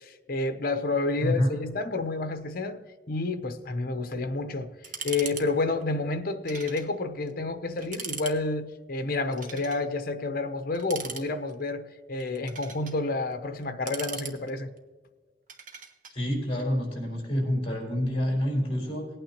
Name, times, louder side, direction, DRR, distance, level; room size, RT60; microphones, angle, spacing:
voice 1, 0.0-4.7 5.0-14.7, left 3 dB, 55° left, 0.8 m, -30 dB
sound 1, 4.8-5.5 5.7-5.8 6.5-6.9 7.3-7.4 7.8-8.4 9.3-9.8 10.7-11.6 12.2-13.0 13.6-14.8 15.5-16.2, right 5 dB, 45° right, 1.1 m, -39 dB
voice 2, 16.1-19.1, equal, 35° left, 3.9 m, -27 dB
18.5 x 9.0 x 2.9 m
head